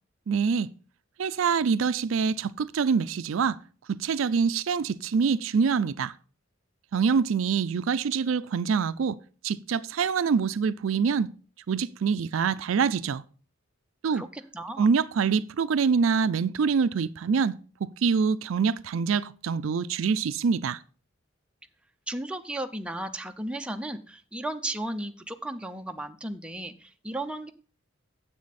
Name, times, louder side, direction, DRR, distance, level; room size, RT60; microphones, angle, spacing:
voice 1, 0.3-0.7 1.2-3.6 3.9-6.1 6.9-9.2 9.4-11.3 11.7-13.2 14.0-14.2 14.8-20.8, right 5 dB, 75° right, 0.4 m, -25 dB
voice 2, 14.1-14.9 22.1-27.5, right 1 dB, 5° right, 0.6 m, -35 dB
9.6 x 7.6 x 4.1 m
head